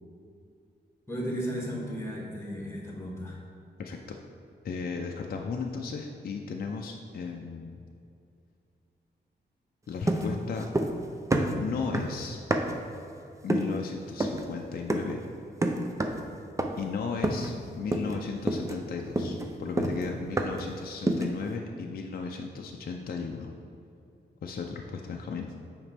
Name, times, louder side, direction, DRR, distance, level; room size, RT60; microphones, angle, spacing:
voice 1, 1.1-3.4, equal, 15° left, -2 dB, 1.4 m, -34 dB
voice 2, 3.8-4.2 4.6-7.8 9.9-10.7 11.5-12.4 13.4-15.2 16.8-23.5 24.4-25.5, left 5 dB, 55° left, 2 dB, 0.5 m, -35 dB
sound 1, 10.1-11.0 11.3-12.9 13.5-13.8 14.2-14.5 14.9-15.2 15.6-16.3 16.6-16.9 17.2-17.6 17.9-18.2 18.5-20.7 21.1-21.4, right 1 dB, 15° right, 0.5 m, -28 dB
7.0 x 5.0 x 3.4 m, 2.6 s
wide cardioid pair, 105°, 19 cm